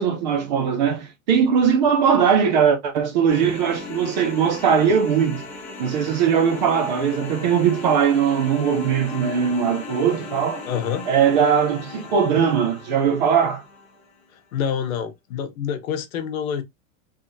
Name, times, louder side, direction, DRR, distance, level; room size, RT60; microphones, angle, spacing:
voice 1, 0.0-5.4 5.8-10.6 11.1-13.6, right 7 dB, 35° right, 0.5 m, -20 dB
sound 1, 3.3-14.1, left 4 dB, 15° left, 0.9 m, -37 dB
voice 2, 10.6-11.1 14.5-16.6, left 8 dB, 75° left, 1.0 m, -27 dB
3.5 x 3.4 x 2.6 m
supercardioid pair, 175°, 41 cm